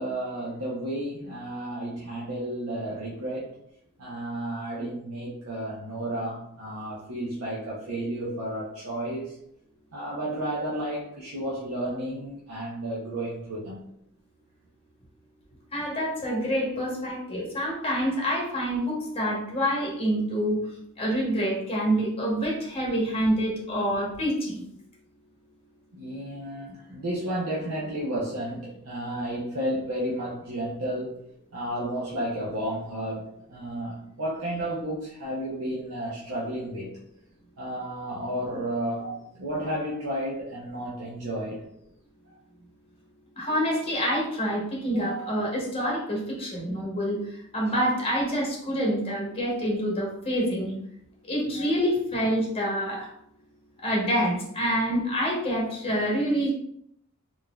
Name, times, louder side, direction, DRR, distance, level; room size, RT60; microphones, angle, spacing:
voice 1, 0.0-3.5 4.0-9.3 9.9-13.9 16.2-16.4 25.9-31.2 31.5-33.2 33.5-36.9 37.6-39.1 39.3-41.6 51.5-51.8, right 1 dB, 70° right, -5 dB, 0.7 m, -32 dB
voice 2, 15.7-20.6 21.0-24.6 39.0-39.1 43.4-47.2 47.5-50.8 51.3-53.1 53.8-56.5, equal, 25° left, -3 dB, 0.9 m, -27 dB
3.7 x 2.6 x 2.3 m, 0.72 s
head